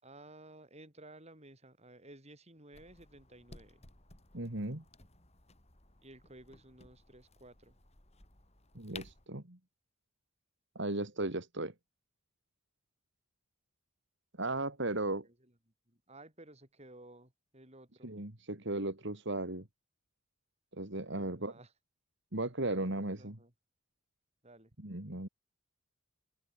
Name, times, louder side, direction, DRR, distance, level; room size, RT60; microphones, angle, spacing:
voice 1, 0.0-3.9 6.0-7.8 15.1-15.5 15.9-18.1 21.1-21.7 22.7-23.5 24.4-24.7, right 1 dB, 30° right, 7.6 m, -55 dB
sound 1, 2.7-9.3, left 3 dB, 30° left, 4.2 m, -56 dB
voice 2, 4.3-4.8 8.7-9.6 10.7-11.7 14.4-15.3 18.0-19.7 20.7-21.5 22.3-23.4 24.8-25.3, right 2 dB, 60° right, 2.9 m, -36 dB
head